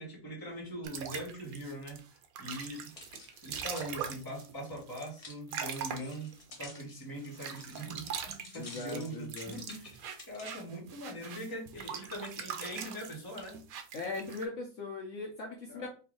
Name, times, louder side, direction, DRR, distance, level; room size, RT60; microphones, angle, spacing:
voice 1, 0.0-2.0 2.4-2.9 3.4-9.9 10.3-13.6 15.7-15.9, right 1 dB, 15° left, -2 dB, 1.2 m, -42 dB
sound 1, 0.8-6.8 7.3-14.5, right 7 dB, 75° right, 1.0 m, -42 dB
sound 2, 2.6-10.6 11.2-11.3, left 2 dB, 35° left, 0.6 m, -52 dB
voice 2, 8.5-9.5 13.9-15.9, left 3 dB, 60° left, 0 dB, 1.0 m, -39 dB
3.3 x 2.6 x 3.8 m, 0.35 s
omnidirectional pair, 1.6 m